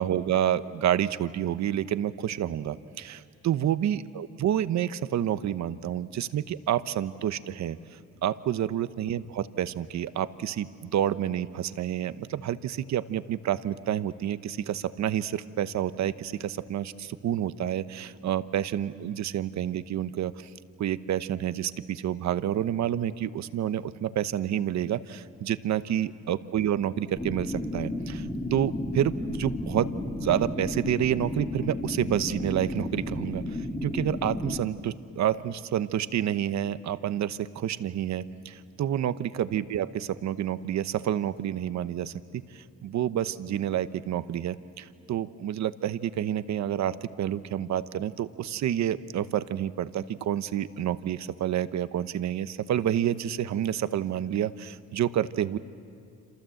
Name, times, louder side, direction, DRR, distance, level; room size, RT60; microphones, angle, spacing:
voice 1, 0.0-7.8 8.2-20.5 20.8-29.9 30.2-55.6, right 11 dB, 65° right, 13 dB, 0.9 m, -29 dB
sound 1, 27.2-34.6, left 1 dB, 15° left, 2.1 m, -33 dB
27.5 x 27.0 x 7.8 m, 2.4 s
cardioid pair, 90°, 30 cm